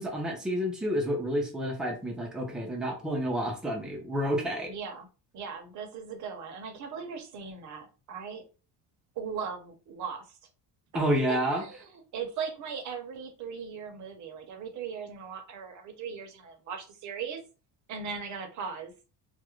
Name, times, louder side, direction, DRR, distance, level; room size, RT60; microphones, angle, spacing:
voice 1, 0.0-4.7 10.9-11.6, equal, ahead, 0.3 m, -29 dB
voice 2, 4.7-5.1 5.3-8.4 9.2-10.4 11.3-17.4 17.9-18.9, right 6 dB, 45° right, 0.6 m, -38 dB
2.4 x 2.0 x 2.9 m
cardioid pair, 165°, 41 cm